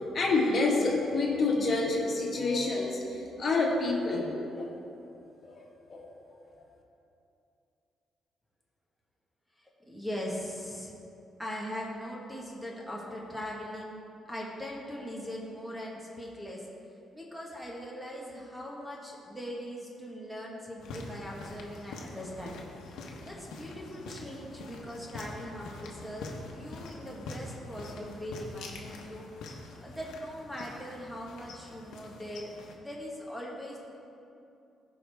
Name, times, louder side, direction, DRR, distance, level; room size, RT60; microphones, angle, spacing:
voice 1, 0.1-4.3 4.6-4.7 5.4-5.5 5.9-6.1, left 3 dB, 45° left, -2 dB, 1.6 m, -28 dB
voice 2, 9.6-10.9 11.4-16.6 17.1-22.6 23.2-29.3 29.8-32.5 32.8-33.8, equal, ahead, -3 dB, 1.4 m, -40 dB
sound 1, 20.8-32.8, left 2 dB, 80° left, 1.0 m, -45 dB
15.0 x 5.1 x 3.5 m, 2.7 s
cardioid pair, 95°, 0 cm